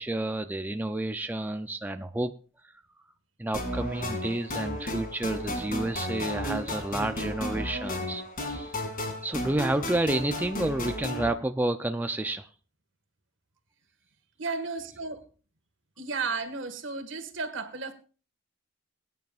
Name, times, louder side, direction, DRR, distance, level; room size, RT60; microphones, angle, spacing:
voice 1, 0.0-2.3 3.4-8.8 9.2-12.5, right 1 dB, 10° right, 7 dB, 0.5 m, -30 dB
sound 1, 3.5-11.3, left 1 dB, 45° left, 2.5 m, -33 dB
voice 2, 14.4-15.2 16.0-17.9, right 4 dB, 70° right, 8 dB, 1.7 m, -33 dB
22.5 x 9.3 x 2.4 m, 0.36 s
head